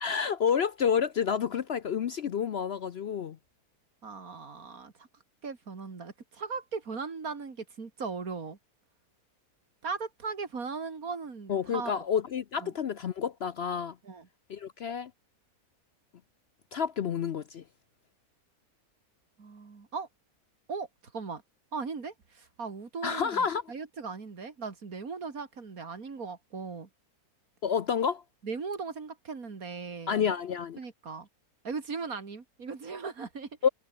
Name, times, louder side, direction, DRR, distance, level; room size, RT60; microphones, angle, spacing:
voice 1, 0.0-3.4 11.5-14.0 14.5-15.1 16.7-17.6 23.0-23.6 27.6-28.2 30.1-30.8 33.6-33.7, left 7 dB, 60° left, 0.7 m, -29 dB
voice 2, 4.0-5.1 5.4-8.6 9.8-12.0 12.6-12.7 14.0-14.3 19.4-20.1 20.7-21.4 21.7-26.9 28.4-30.2 30.8-31.3 31.6-33.5, right 4 dB, 65° right, 3.1 m, -38 dB
omnidirectional pair, 1.6 m